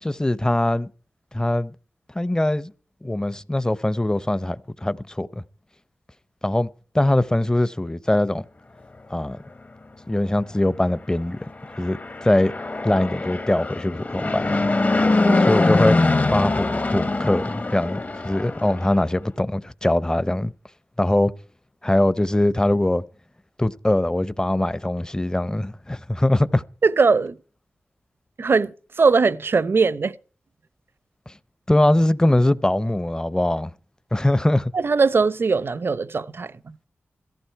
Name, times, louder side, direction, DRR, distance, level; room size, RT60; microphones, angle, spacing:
voice 1, 0.0-0.9 1.3-1.7 2.1-2.7 3.0-5.4 6.4-6.7 6.9-8.4 9.1-9.4 10.1-11.4 11.8-12.5 12.8-14.7 15.4-16.0 16.3-20.5 21.0-21.3 21.8-23.0 23.6-26.6 31.7-33.7 34.1-34.7, left 1 dB, 15° left, 0.6 m, -22 dB
Fixed-wing aircraft airplane, 11.6-19.0, left 2 dB, 40° left, 0.9 m, -23 dB
voice 2, 26.8-27.4 28.4-30.1 34.7-36.5, right 4 dB, 60° right, 0.6 m, -20 dB
17.0 x 14.5 x 4.6 m
cardioid pair, 65°, 4 cm